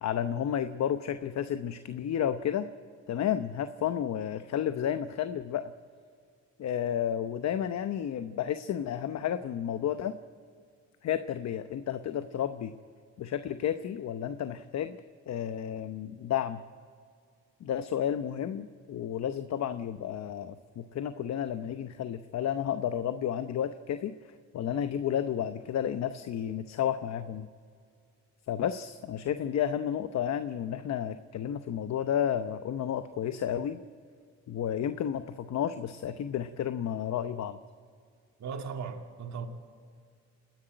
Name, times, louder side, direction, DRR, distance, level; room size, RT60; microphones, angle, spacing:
voice 1, 0.0-2.7 3.1-5.7 6.6-10.1 11.0-12.7 13.2-15.0 15.3-16.6 17.6-27.5 28.5-33.8 34.5-37.6, left 9 dB, 60° left, 0.9 m, -32 dB
voice 2, 38.4-39.5, right 6 dB, 65° right, 2.4 m, -37 dB
28.5 x 10.5 x 9.0 m
cardioid pair, 90°, 30 cm